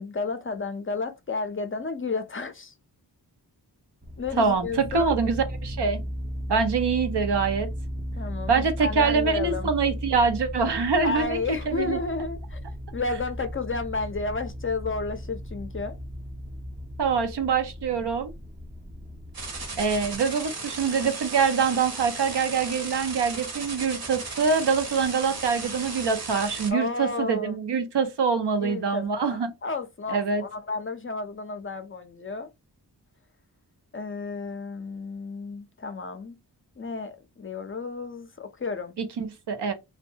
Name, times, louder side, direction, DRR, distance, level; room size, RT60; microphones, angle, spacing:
voice 1, 0.0-2.7 4.2-5.2 8.2-9.7 11.0-12.6 12.9-16.0 26.7-27.6 28.6-32.5 33.9-36.4 36.8-38.9, left 4 dB, 30° left, 0.4 m, -32 dB
sound 1, 4.0-20.2, equal, 20° right, 0.5 m, -36 dB
voice 2, 4.4-6.0 6.5-7.7 8.5-12.0 17.0-18.3 19.8-29.5 30.1-30.4 39.0-39.7, right 5 dB, 80° right, 0.7 m, -25 dB
sound 2, 19.3-26.7, right 3 dB, 60° right, 1.0 m, -36 dB
2.6 x 2.2 x 2.7 m
wide cardioid pair, 75°, 41 cm